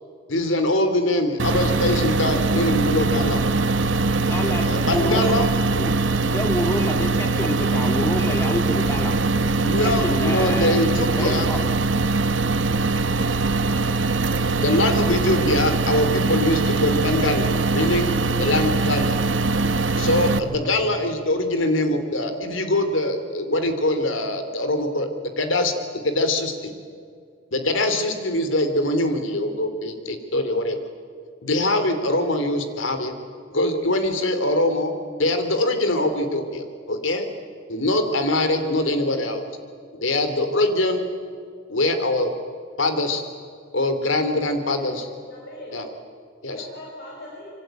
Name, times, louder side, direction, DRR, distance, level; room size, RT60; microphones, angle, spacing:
voice 1, 0.3-3.4 4.6-5.5 9.6-11.5 14.6-19.2 20.0-25.1 25.4-25.7 26.0-26.7 27.5-30.8 31.4-33.1 33.5-34.9 35.2-37.3 37.7-39.4 40.0-41.1 41.7-42.3 42.8-43.2 43.7-45.0 45.7-45.8 46.4-46.6, left 1 dB, 85° left, 8 dB, 3.2 m, -23 dB
sound 1, 1.4-20.4, right 3 dB, 70° right, 1.3 m, -22 dB
voice 2, 4.2-5.3 5.8-6.0 6.3-9.1 9.8-10.9 11.1-11.6, equal, 15° left, 5 dB, 2.5 m, -28 dB
voice 3, 44.4-44.9 45.3-45.8 46.4-47.5, left 1 dB, 60° left, -3 dB, 6.4 m, -40 dB
26.0 x 24.5 x 9.1 m, 2.2 s
head